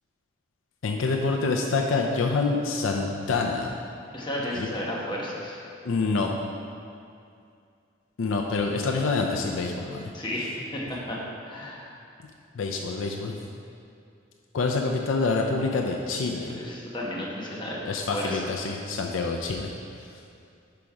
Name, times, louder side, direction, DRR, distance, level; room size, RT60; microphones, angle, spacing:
voice 1, 0.8-3.7 4.6-4.7 5.8-6.3 8.2-10.1 12.5-13.4 14.5-16.6 17.8-19.7, left 3 dB, 85° left, 1 dB, 0.5 m, -26 dB
voice 2, 4.1-5.6 10.1-11.9 16.4-18.5, left 1 dB, 25° left, -4 dB, 1.1 m, -33 dB
5.8 x 5.1 x 4.8 m, 2.4 s
head